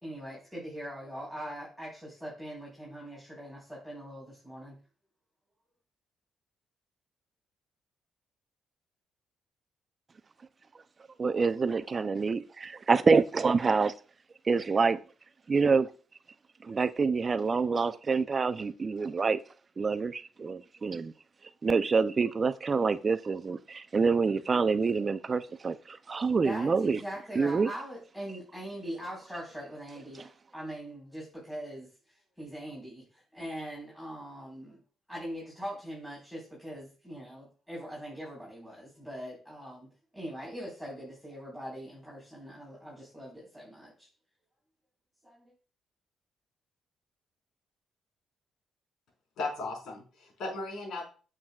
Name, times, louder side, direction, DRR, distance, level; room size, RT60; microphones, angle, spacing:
voice 1, 0.0-4.7 26.4-34.8 35.1-39.9 40.1-44.1 45.2-45.5, equal, 5° left, -5 dB, 4.3 m, -42 dB
voice 2, 11.2-13.9 14.5-15.0 15.5-15.9 16.6-19.4 19.8-21.1 21.6-27.0 27.4-27.7, right 4 dB, 35° right, 13 dB, 0.5 m, -27 dB
voice 3, 49.4-51.0, left 3 dB, 75° left, -1 dB, 4.3 m, -36 dB
8.7 x 7.4 x 2.4 m, 0.37 s
cardioid pair, 90°, 0 cm